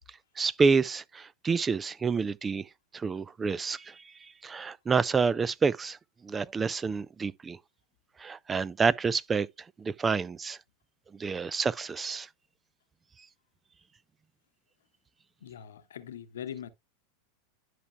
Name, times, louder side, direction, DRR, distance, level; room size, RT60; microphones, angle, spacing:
voice 1, 0.4-2.7 2.9-6.0 6.2-7.6 8.2-9.5 9.8-10.6 11.1-12.3, right 5 dB, 20° right, 0.3 m, -28 dB
voice 2, 15.4-16.7, left 9 dB, 65° left, 0.9 m, -42 dB
11.0 x 5.7 x 2.2 m
figure-of-eight pair, 85°, 0 cm